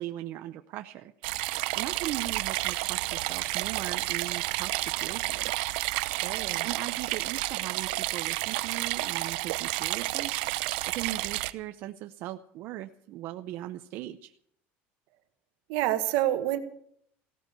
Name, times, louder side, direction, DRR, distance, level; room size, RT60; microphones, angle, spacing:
voice 1, 0.0-1.5 1.7-5.5 6.6-14.3, right 14 dB, 45° right, 7 dB, 0.6 m, -39 dB
sound 1, 1.2-11.5, right 20 dB, 85° right, 0.7 m, -31 dB
voice 2, 6.0-6.7 15.7-16.6, right 14 dB, 65° right, 9 dB, 1.6 m, -28 dB
17.0 x 13.0 x 6.7 m, 0.66 s
cardioid pair, 180°, 5 cm